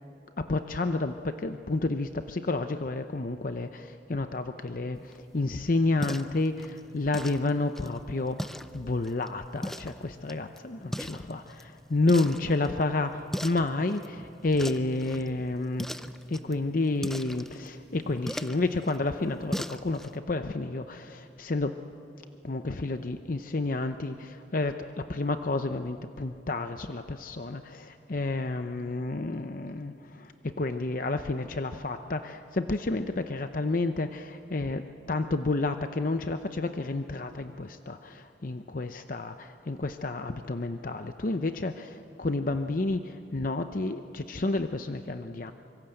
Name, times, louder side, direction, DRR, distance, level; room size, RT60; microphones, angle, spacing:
voice 1, 0.4-21.8 22.4-45.5, left 2 dB, 45° left, 8 dB, 0.7 m, -30 dB
sound 1, 4.9-20.2, equal, ahead, 0.5 m, -41 dB
25.0 x 23.5 x 7.8 m, 2.8 s
head